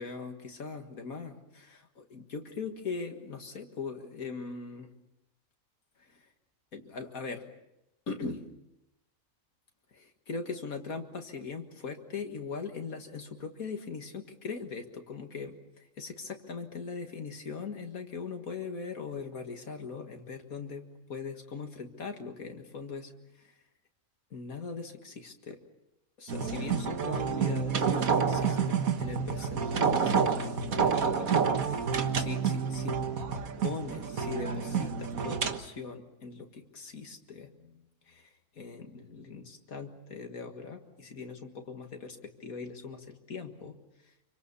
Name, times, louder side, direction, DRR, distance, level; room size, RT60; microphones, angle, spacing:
voice 1, 0.0-4.9 6.0-6.3 6.7-7.5 8.1-8.5 9.9-23.6 24.3-25.6 26.2-43.8 44.0-44.1, left 4 dB, 70° left, 5 dB, 2.2 m, -41 dB
sound 1, 26.3-35.6, right 6 dB, 70° right, 1.8 m, -29 dB
26.5 x 25.0 x 7.0 m, 0.87 s
omnidirectional pair, 1.6 m